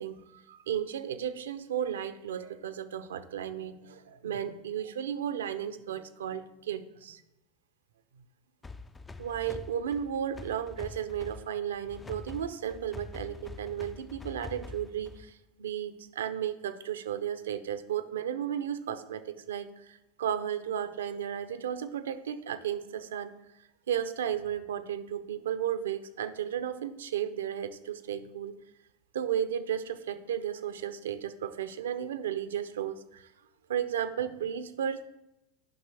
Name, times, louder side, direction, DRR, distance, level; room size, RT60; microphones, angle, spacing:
voice 1, 0.0-7.2 9.2-23.3 23.9-28.6 29.1-33.3 33.7-35.0, right 9 dB, 80° right, 11 dB, 0.5 m, -34 dB
sound 1, 8.6-15.4, left 3 dB, 15° left, 0.3 m, -45 dB
10.5 x 5.5 x 3.4 m, 0.91 s
hypercardioid pair, 90°, 0 cm